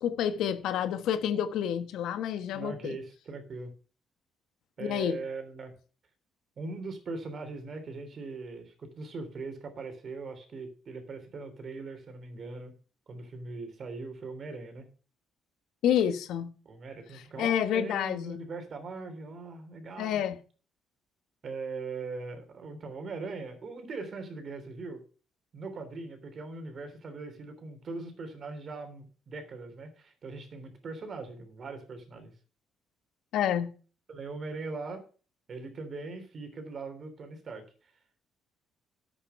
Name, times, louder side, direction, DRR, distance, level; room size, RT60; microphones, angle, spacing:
voice 1, 0.0-3.0 4.8-5.2 15.8-16.5 17.4-18.4 20.0-20.4 33.3-33.7, left 9 dB, 80° left, 1.2 m, -28 dB
voice 2, 2.5-3.7 4.8-5.7 6.6-12.7 13.1-14.9 16.6-20.2 21.4-25.0 25.5-32.3 34.1-35.1 35.5-37.9, right 3 dB, 45° right, 3.3 m, -40 dB
10.0 x 8.4 x 5.7 m
cardioid pair, 105°, 0 cm